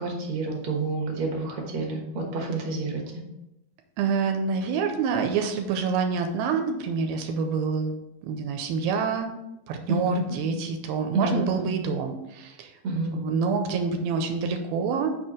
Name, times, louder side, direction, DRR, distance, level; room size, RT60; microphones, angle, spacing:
voice 1, 0.0-3.2 9.9-10.4 11.1-11.7 12.8-13.2, right 2 dB, 60° right, 0 dB, 2.0 m, -29 dB
voice 2, 4.0-8.0 8.2-9.3 9.7-12.7 13.1-15.1, right 5 dB, 85° right, 5 dB, 2.4 m, -27 dB
5.5 x 4.5 x 4.8 m, 0.92 s
omnidirectional pair, 4.3 m